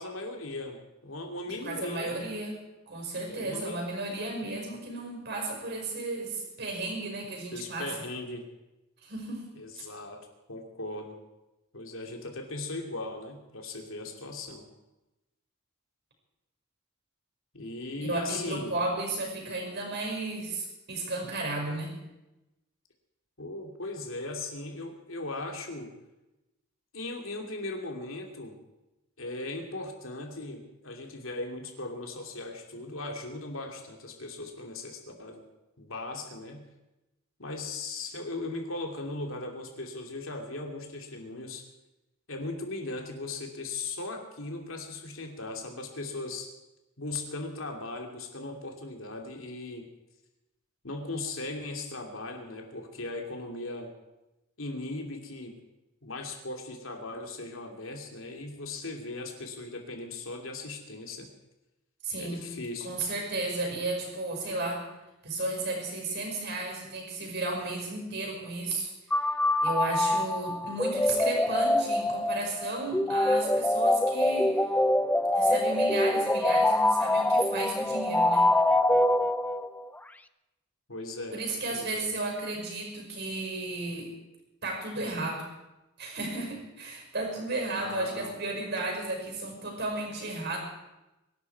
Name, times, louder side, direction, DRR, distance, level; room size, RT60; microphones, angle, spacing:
voice 1, 0.0-2.2 3.3-3.8 7.5-8.4 9.6-11.2 11.7-14.7 17.5-18.7 23.4-25.9 26.9-28.6 29.2-35.5 35.8-36.6 37.4-41.7 42.3-46.5 47.0-49.9 50.8-53.9 54.6-55.6 56.0-61.3 62.2-63.0 80.9-81.4 81.7-82.2 87.7-88.4, left 2 dB, 75° left, 3 dB, 2.6 m, -38 dB
voice 2, 1.5-2.6 2.9-7.9 9.0-9.8 18.0-21.9 62.0-62.5 62.8-64.8 65.2-68.9 69.6-74.6 75.4-78.5 81.3-84.1 84.6-85.5 86.0-90.6, right 2 dB, 55° right, 1 dB, 5.3 m, -34 dB
sound 1, 69.1-79.8, left 1 dB, 5° left, 0.4 m, -25 dB
24.0 x 11.5 x 4.7 m, 0.99 s
head